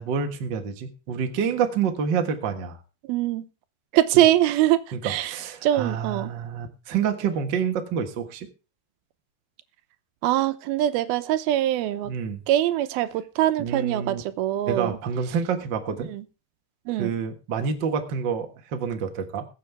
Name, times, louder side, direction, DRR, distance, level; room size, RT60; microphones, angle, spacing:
voice 1, 0.0-2.8 4.1-4.2 4.9-8.5 12.0-12.4 13.6-14.2 14.6-16.1 17.0-19.4, right 6 dB, 50° right, 1.3 m, -28 dB
voice 2, 3.1-3.5 3.9-5.4 5.6-6.3 10.2-12.1 12.5-15.0 16.0-16.2 16.9-17.1, right 13 dB, 85° right, 2.7 m, -23 dB
21.0 x 7.7 x 3.4 m
omnidirectional pair, 4.3 m